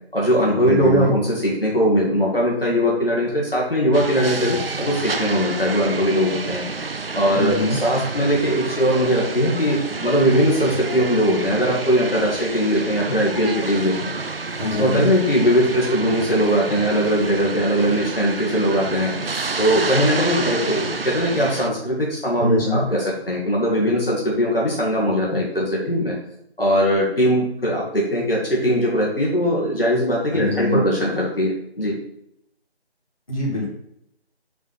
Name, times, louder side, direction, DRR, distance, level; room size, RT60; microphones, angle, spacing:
voice 1, 0.1-6.7 7.2-14.1 14.8-26.1 26.6-32.0, equal, 60° left, -3 dB, 1.8 m, -20 dB
voice 2, 0.6-1.1 7.3-7.8 14.6-15.1 22.4-22.9 30.3-30.8 33.3-33.7, left 2 dB, 30° left, -6 dB, 2.4 m, -23 dB
sound 1, 3.9-21.7, right 4 dB, 60° right, 0.6 m, -29 dB
7.2 x 3.3 x 5.6 m, 0.76 s
figure-of-eight pair, 175°, 33 cm